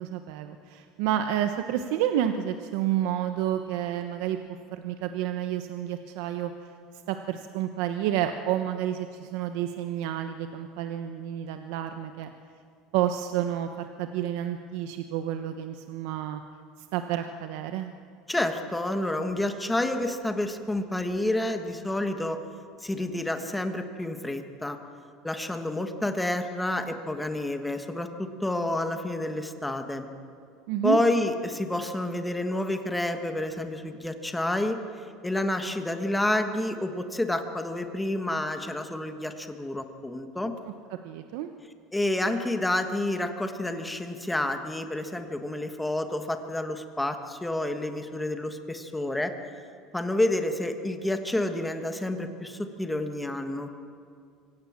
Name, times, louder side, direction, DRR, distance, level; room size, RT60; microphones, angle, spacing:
voice 1, 0.0-4.4 4.7-6.7 7.1-12.3 12.9-16.4 16.9-17.9 30.7-31.0 40.9-41.5, right 11 dB, 70° right, 7 dB, 1.0 m, -30 dB
voice 2, 18.3-22.4 22.8-24.8 25.2-30.1 30.8-34.8 35.2-40.5 41.9-49.3 49.9-53.7, left 1 dB, 5° left, 7 dB, 1.4 m, -29 dB
25.5 x 17.0 x 7.4 m, 2.4 s
cardioid pair, 150°, 0 cm